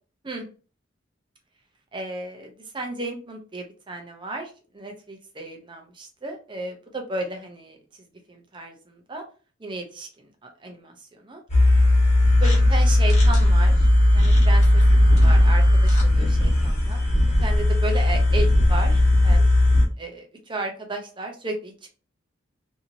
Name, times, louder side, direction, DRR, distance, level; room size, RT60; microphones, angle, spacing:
voice 1, 1.9-7.8 8.3-9.2 9.6-10.1 10.4-10.9 11.2-11.4 12.4-13.7 14.1-14.8 15.2-17.0 17.4-19.4 20.0-21.9, right 2 dB, 25° right, 3 dB, 0.6 m, -34 dB
sound 1, 11.5-19.8, left 1 dB, 35° left, 1.2 m, -17 dB
2.8 x 2.7 x 2.7 m, 0.37 s
head